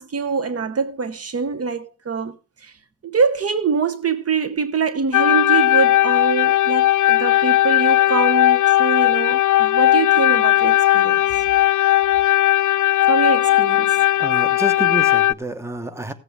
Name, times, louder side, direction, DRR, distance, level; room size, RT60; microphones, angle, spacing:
voice 1, 0.0-2.7 3.0-11.4 13.1-14.0, right 5 dB, 50° right, 0.9 m, -24 dB
sound 1, 5.1-15.3, left 14 dB, 75° left, 0.5 m, -17 dB
voice 2, 14.2-16.1, right 1 dB, 10° right, 1.1 m, -29 dB
16.5 x 7.9 x 3.4 m
wide cardioid pair, 120°, 30 cm